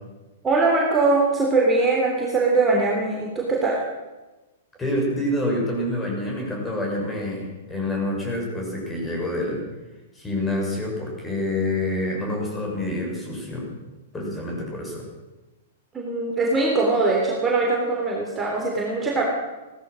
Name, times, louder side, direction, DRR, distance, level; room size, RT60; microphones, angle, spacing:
voice 1, 0.4-3.8 15.9-19.2, right 3 dB, 15° right, -2 dB, 3.3 m, -21 dB
voice 2, 4.8-9.6 10.1-13.8 14.1-15.1, left 1 dB, 15° left, -1 dB, 6.7 m, -27 dB
17.0 x 13.5 x 6.4 m, 1.1 s
figure-of-eight pair, 105°, 0 cm